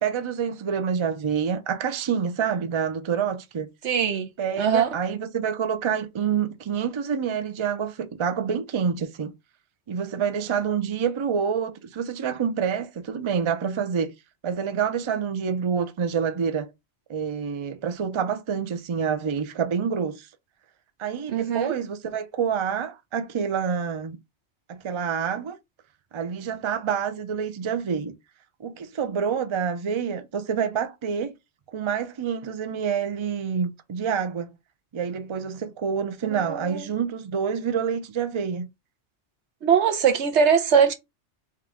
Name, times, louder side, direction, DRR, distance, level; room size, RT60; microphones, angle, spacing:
voice 1, 0.0-3.7 4.4-9.3 9.9-14.1 14.4-16.7 17.1-20.3 21.0-24.2 24.7-25.6 26.1-28.1 28.6-31.3 31.7-34.5 34.9-38.7, right 7 dB, 40° right, 0.5 m, -27 dB
voice 2, 3.8-4.3 4.6-4.9 21.3-21.7 36.2-36.9 39.6-40.9, right 7 dB, 85° right, 1.1 m, -21 dB
3.7 x 3.0 x 3.5 m
omnidirectional pair, 1.1 m